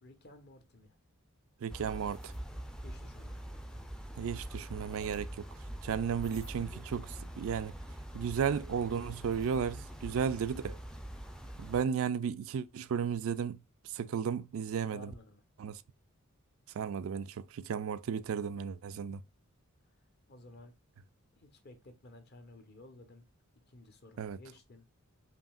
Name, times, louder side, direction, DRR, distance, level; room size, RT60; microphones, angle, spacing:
voice 1, 0.0-1.0 2.8-3.4 10.1-10.3 14.9-15.4 20.3-20.7 21.3-23.3 23.7-24.9, left 1 dB, 45° left, 0.9 m, -54 dB
voice 2, 1.6-2.3 4.2-5.4 5.8-7.7 8.1-10.8 11.6-13.6 13.9-15.1 15.6-15.8 16.8-19.2 24.2-24.4, right 7 dB, 65° right, 0.3 m, -34 dB
sound 1, 1.7-11.8, right 1 dB, 5° left, 0.4 m, -44 dB
5.1 x 2.8 x 2.3 m
head